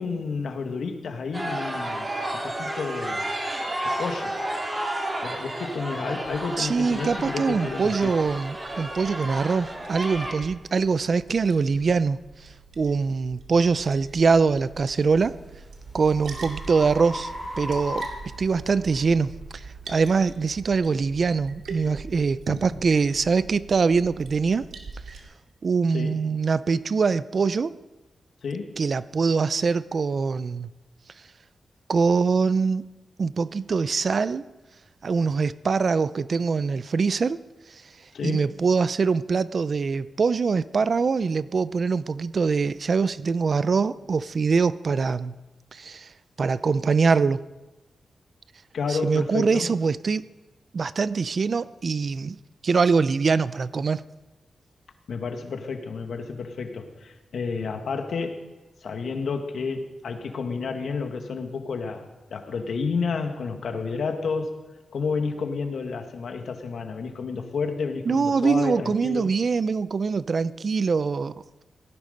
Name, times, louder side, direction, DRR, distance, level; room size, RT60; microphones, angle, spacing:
voice 1, 0.0-2.1 2.4-3.2 3.8-4.4 5.2-8.1 25.9-26.2 28.4-28.8 38.1-38.4 48.7-49.7 55.1-58.4 58.8-69.3, left 4 dB, 75° left, 5 dB, 1.9 m, -30 dB
sound 1, 1.3-10.3, right 1 dB, 25° right, 2.9 m, -31 dB
Liquid, 6.2-25.2, right 4 dB, 85° right, 2.3 m, -43 dB
voice 2, 6.6-12.2 12.8-15.3 15.9-18.1 18.4-24.6 25.6-27.7 28.8-30.7 31.9-32.8 33.2-34.4 35.0-37.4 38.2-45.4 45.7-46.1 46.4-47.4 48.9-50.3 50.7-52.4 52.6-54.0 68.1-71.3, right 5 dB, 50° right, 16 dB, 0.5 m, -23 dB
sound 2, 10.2-10.3 10.9-11.1 11.7-11.9 14.5-19.0, left 1 dB, 10° right, 5.1 m, -37 dB
18.0 x 15.0 x 5.2 m, 1.1 s
wide cardioid pair, 95°, 0 cm